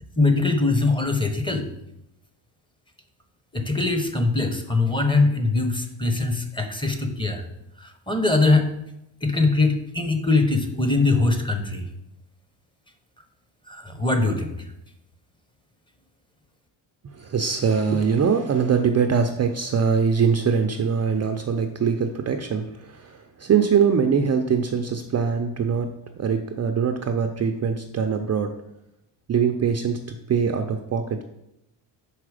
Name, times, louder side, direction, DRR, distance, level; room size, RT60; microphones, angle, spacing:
voice 1, 0.2-1.7 3.5-7.5 7.8-8.7 9.2-11.8 13.7-14.5, left 3 dB, 10° left, 5 dB, 0.9 m, -22 dB
voice 2, 17.0-28.6 29.3-31.2, right 6 dB, 35° right, 6 dB, 0.5 m, -23 dB
5.6 x 4.8 x 4.9 m, 0.85 s
cardioid pair, 90°, 47 cm